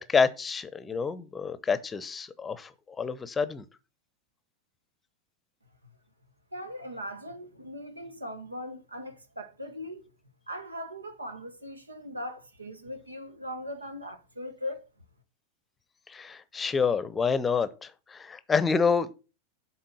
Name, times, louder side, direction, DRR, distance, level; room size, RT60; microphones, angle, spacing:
voice 1, 0.0-2.7 3.0-3.6 16.1-19.1, left 5 dB, 15° left, 0.8 m, -28 dB
voice 2, 6.5-10.1 10.5-14.8, equal, 80° right, 1.1 m, -39 dB
7.5 x 4.3 x 6.9 m
figure-of-eight pair, 90°, 0 cm